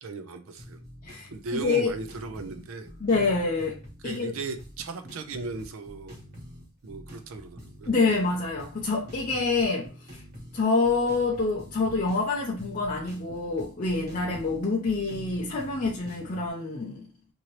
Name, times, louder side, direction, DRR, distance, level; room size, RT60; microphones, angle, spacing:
voice 1, 0.0-0.8 1.3-2.9 4.0-6.2 6.8-7.9, right 4 dB, 65° right, 0.4 m, -37 dB
sound 1, 0.6-16.5, equal, 40° right, 1.3 m, -45 dB
voice 2, 1.0-1.9 3.0-3.8 4.0-4.3 7.9-9.9 10.5-17.1, left 3 dB, 35° left, 0.5 m, -26 dB
2.8 x 2.6 x 2.9 m
head